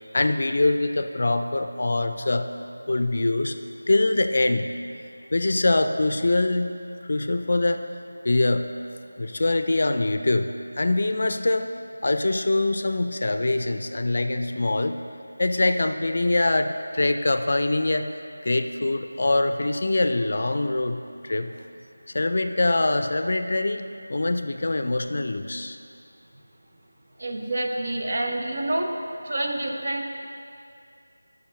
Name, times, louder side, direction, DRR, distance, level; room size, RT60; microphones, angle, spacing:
voice 1, 0.1-2.5 2.9-3.6 3.9-4.7 5.3-6.8 7.1-7.8 8.2-8.7 9.2-11.7 12.0-15.0 15.4-18.1 18.4-21.5 22.1-23.8 24.1-25.8, left 2 dB, 50° left, 8 dB, 0.4 m, -23 dB
voice 2, 27.2-28.9 29.3-30.1, right 1 dB, 50° right, 2 dB, 0.9 m, -27 dB
13.0 x 6.2 x 3.2 m, 2.4 s
figure-of-eight pair, 170°, 0 cm